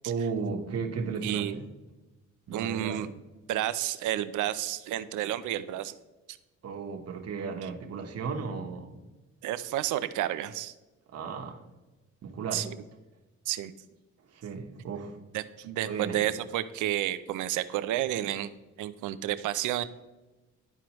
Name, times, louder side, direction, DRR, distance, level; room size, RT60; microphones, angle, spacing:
voice 1, 0.0-1.7 2.5-3.1 6.6-9.0 11.1-11.6 12.2-12.7 14.3-15.2 15.9-16.3, right 5 dB, 55° right, 3 dB, 1.3 m, -35 dB
voice 2, 1.2-1.6 2.5-3.1 3.5-5.9 6.3-6.4 9.4-10.7 12.5-12.7 13.5-13.7 15.3-18.5 18.8-19.8, right 13 dB, 85° right, 14 dB, 0.6 m, -31 dB
12.0 x 4.6 x 3.0 m, 1.1 s
cardioid pair, 90°, 30 cm